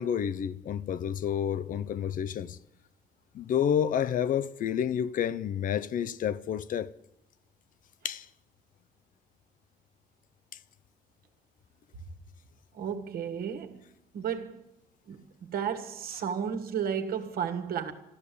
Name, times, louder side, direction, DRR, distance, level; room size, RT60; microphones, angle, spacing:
voice 1, 0.0-2.6 3.3-6.9 8.0-8.3, left 9 dB, 55° left, 0.7 m, -29 dB
voice 2, 12.7-13.8 14.1-14.6 15.1-17.9, right 7 dB, 60° right, 1.7 m, -33 dB
13.5 x 12.5 x 8.4 m
cardioid pair, 110°, 17 cm